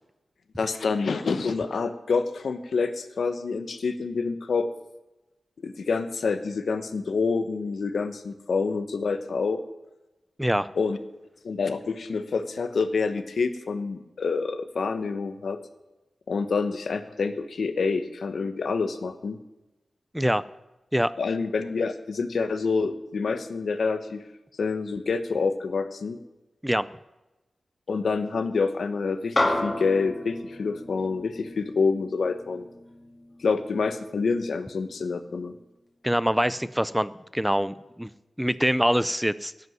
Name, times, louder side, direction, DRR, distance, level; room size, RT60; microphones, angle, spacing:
voice 1, 0.6-4.7 5.6-9.6 10.8-11.0 11.4-15.6 16.3-19.4 21.2-24.2 24.6-26.2 27.9-32.7 33.4-35.5, left 4 dB, 80° left, 10 dB, 1.1 m, -27 dB
sound 1, 29.4-34.0, left 1 dB, 25° left, 2.0 m, -31 dB
voice 2, 36.0-38.1 38.4-39.5, equal, 5° right, 16 dB, 0.4 m, -24 dB
11.0 x 8.1 x 9.5 m, 1.0 s
wide cardioid pair, 105°, 0 cm